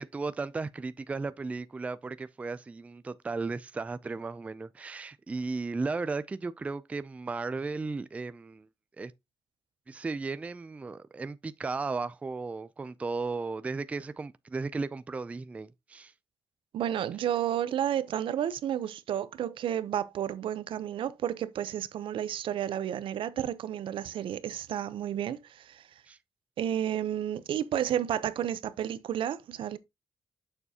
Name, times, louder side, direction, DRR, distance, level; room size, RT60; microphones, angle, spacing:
voice 1, 0.0-8.7 9.0-9.1 9.9-16.1 26.1-26.2, right 3 dB, 15° right, 0.3 m, -35 dB
voice 2, 16.7-25.9 26.6-29.8, right 10 dB, 80° right, 0.7 m, -31 dB
6.9 x 6.7 x 2.8 m
wide cardioid pair, 175°, 9 cm